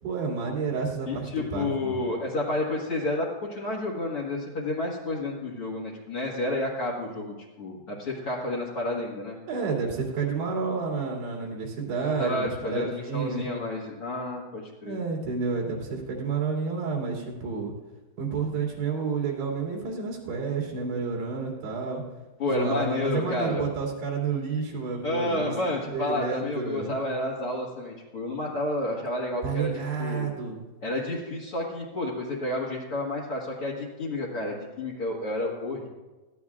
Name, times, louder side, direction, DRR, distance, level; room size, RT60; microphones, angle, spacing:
voice 1, 0.0-2.0 9.5-13.5 14.8-17.7 18.2-22.0 22.5-25.5 25.8-27.0 29.4-30.6, right 5 dB, 80° right, -2 dB, 4.7 m, -30 dB
voice 2, 1.1-9.4 12.2-15.0 22.4-23.7 25.0-29.7 30.0-30.3 30.8-35.9, left 2 dB, 55° left, -1 dB, 1.7 m, -30 dB
21.5 x 15.0 x 2.4 m, 1.2 s
omnidirectional pair, 4.8 m